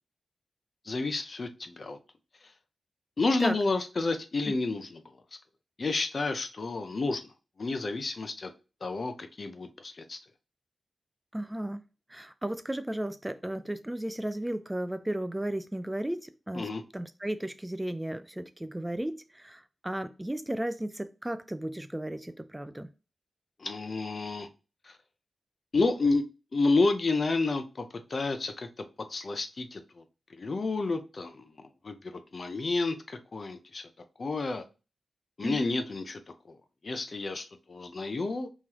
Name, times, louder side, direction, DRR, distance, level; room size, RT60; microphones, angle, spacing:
voice 1, 0.9-2.0 3.2-5.0 5.8-7.2 7.6-8.5 8.8-10.2 16.5-16.8 23.6-24.5 25.7-26.2 26.5-28.7 29.1-30.0 30.4-31.5 31.8-33.8 34.2-34.6 35.4-36.2 36.8-38.5, left 3 dB, 55° left, 0.6 m, -30 dB
voice 2, 11.3-11.8 12.1-22.9 35.4-35.7, right 1 dB, 15° right, 0.3 m, -34 dB
3.8 x 3.1 x 2.9 m
cardioid pair, 50°, 0 cm